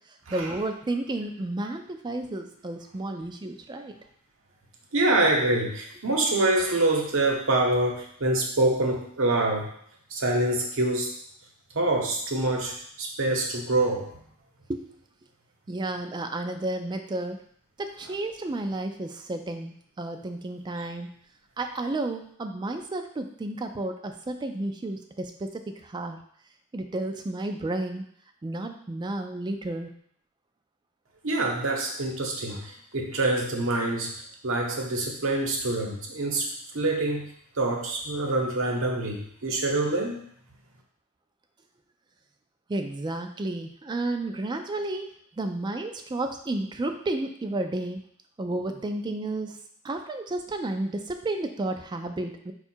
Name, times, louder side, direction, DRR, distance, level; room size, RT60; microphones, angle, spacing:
voice 1, 0.3-4.0 14.7-14.8 15.7-17.4 17.8-21.1 21.6-26.2 26.7-28.0 28.4-29.9 42.7-45.1 45.4-48.0 48.4-49.6 49.8-52.5, right 2 dB, 20° right, 5 dB, 0.3 m, -32 dB
voice 2, 4.9-9.7 10.1-11.1 11.7-14.1 31.2-34.1 34.4-36.5 36.7-37.3 37.6-40.2, right 2 dB, 60° right, 0 dB, 0.9 m, -25 dB
4.6 x 2.4 x 4.3 m, 0.65 s
head